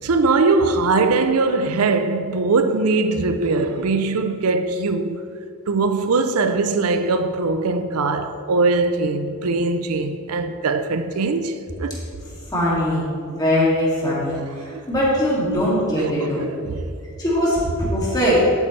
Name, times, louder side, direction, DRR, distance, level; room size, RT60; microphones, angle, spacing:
voice 1, 0.0-5.3 5.7-12.0 14.3-14.9 16.0-16.9, right 3 dB, 85° right, 0.5 m, -21 dB
voice 2, 12.5-14.4 14.9-16.4 17.2-18.4, equal, 20° left, 2.3 m, -21 dB
11.5 x 7.9 x 3.2 m
head